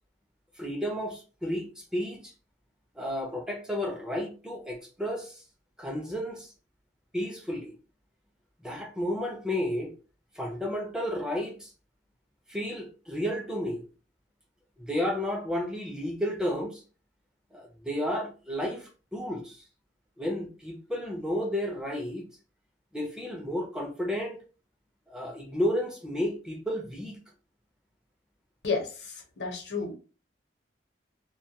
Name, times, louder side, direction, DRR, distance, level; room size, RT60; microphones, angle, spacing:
voice 1, 0.6-2.3 3.0-5.4 5.8-6.5 7.1-7.7 8.6-9.9 10.3-11.7 12.5-13.8 14.8-16.8 17.5-19.6 20.2-22.3 22.9-24.4 25.1-27.2, equal, 5° right, 0.5 m, -32 dB
voice 2, 28.6-29.9, left 4 dB, 75° left, 0.8 m, -32 dB
2.2 x 2.2 x 2.8 m
head